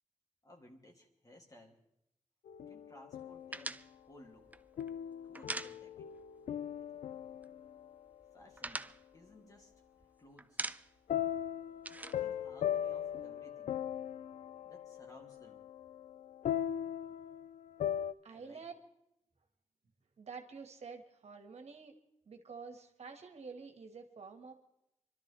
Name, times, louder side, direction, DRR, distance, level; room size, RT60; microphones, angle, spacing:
voice 1, 0.4-1.8 2.7-3.8 4.1-4.5 5.2-6.1 8.3-8.9 9.1-10.8 11.9-13.8 14.6-15.6 18.3-18.7, left 1 dB, 30° left, 1 dB, 2.8 m, -59 dB
sound 1, 2.5-3.7 4.8-8.0 11.1-18.1, left 10 dB, 90° left, 0.5 m, -39 dB
sound 2, 3.5-6.3 6.6-6.7 7.0-7.7 8.1-10.1 10.4-11.1 11.4-13.2, right 2 dB, 15° right, 0.5 m, -43 dB
voice 2, 18.2-18.7 20.2-22.0 22.3-24.5, right 5 dB, 65° right, 5 dB, 1.9 m, -49 dB
25.5 x 12.5 x 3.5 m, 0.82 s
cardioid pair, 90°, 12 cm